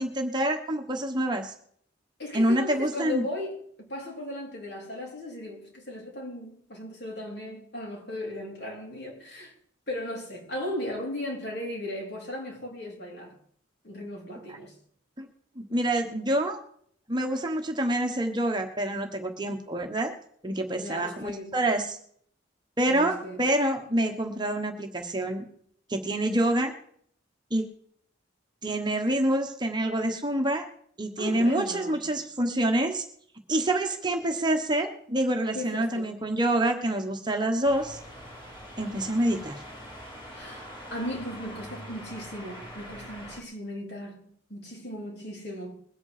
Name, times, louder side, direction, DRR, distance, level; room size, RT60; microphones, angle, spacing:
voice 1, 0.0-1.5 2.3-3.2 14.5-14.6 15.2-15.3 15.6-16.6 17.1-20.1 20.4-22.0 22.8-25.4 25.9-26.7 27.5-27.6 28.6-30.6 31.0-33.0 33.5-38.0 38.8-39.6, right 1 dB, 20° right, 1.2 m, -27 dB
voice 2, 2.2-9.5 9.9-13.4 13.8-14.8 20.8-21.6 22.9-23.4 31.2-32.0 35.5-36.1 40.3-45.7, left 1 dB, 55° left, 3.8 m, -37 dB
sound 1, 37.6-43.4, equal, 25° left, 2.9 m, -43 dB
21.0 x 8.4 x 5.0 m
head